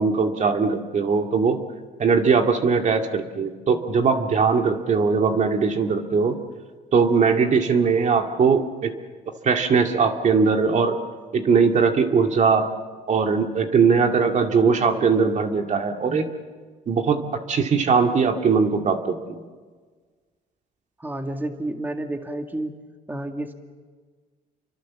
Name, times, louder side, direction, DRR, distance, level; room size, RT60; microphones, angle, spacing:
voice 1, 0.0-1.6 2.0-6.4 6.9-8.9 9.4-11.0 11.3-12.7 13.1-16.3 16.9-17.2 17.5-19.4, right 5 dB, 45° right, 4 dB, 2.2 m, -20 dB
voice 2, 21.0-22.7 23.1-23.5, right 1 dB, 10° right, 5 dB, 2.1 m, -30 dB
28.0 x 24.0 x 7.4 m, 1.5 s
cardioid pair, 95°, 17 cm